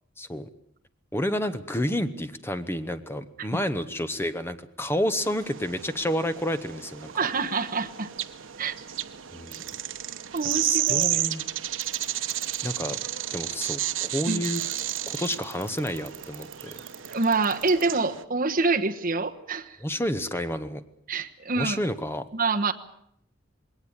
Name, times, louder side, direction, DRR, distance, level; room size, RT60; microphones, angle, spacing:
voice 1, 0.2-0.5 1.1-7.1 9.3-9.6 10.6-11.4 12.6-13.0 13.3-14.6 15.1-16.8 19.8-20.8 21.6-22.3, equal, 10° left, 10 dB, 1.1 m, -30 dB
sound 1, 5.2-18.2, right 12 dB, 85° right, 0.9 m, -32 dB
voice 2, 7.1-8.1 8.6-8.8 10.3-11.2 14.3-14.4 17.1-19.8 21.1-21.8 22.3-22.7, right 3 dB, 45° right, 4 dB, 1.2 m, -26 dB
sound 2, 9.5-9.7 10.4-10.5 10.9-11.1 11.8-12.6 14.4-17.8, right 13 dB, 65° right, 4.7 m, -42 dB
20.5 x 18.5 x 8.8 m, 0.70 s
head